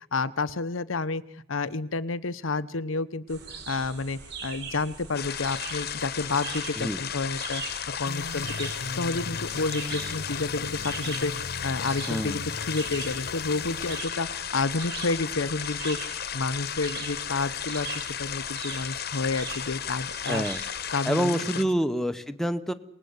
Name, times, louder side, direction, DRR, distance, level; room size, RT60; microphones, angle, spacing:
voice 1, 0.1-1.2 1.5-3.4 3.7-7.6 8.0-11.3 11.6-16.0 16.3-20.4 20.9-21.7, left 3 dB, 90° left, 13 dB, 1.0 m, -30 dB
sound 1, 3.3-21.0, right 5 dB, 55° right, 5.0 m, -42 dB
sound 2, 5.1-21.6, left 9 dB, 50° left, 1.2 m, -34 dB
sound 3, 8.1-14.0, left 3 dB, 65° left, 1.2 m, -39 dB
voice 2, 12.1-12.4 20.3-20.6 21.0-22.7, equal, ahead, 8 dB, 0.9 m, -27 dB
26.5 x 19.5 x 8.2 m, 0.79 s
head